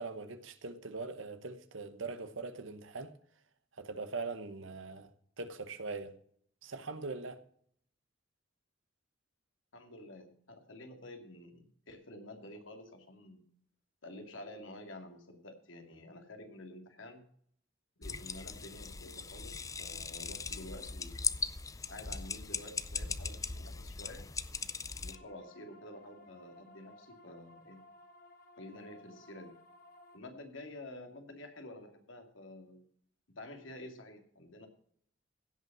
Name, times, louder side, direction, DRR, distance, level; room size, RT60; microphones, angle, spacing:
voice 1, 0.0-3.1 3.8-5.1 5.4-6.1 6.6-7.4, right 3 dB, 85° right, 1.1 m, -41 dB
voice 2, 9.7-13.4 14.0-17.2 18.0-21.2 21.9-24.2 25.0-27.8 28.6-29.5 30.1-32.8 33.4-34.7, left 1 dB, 85° left, 2.5 m, -49 dB
sound 1, 18.0-25.2, left 5 dB, 15° left, 0.4 m, -39 dB
sound 2, 25.1-30.2, left 1 dB, 45° left, 1.4 m, -58 dB
16.5 x 5.6 x 7.3 m
head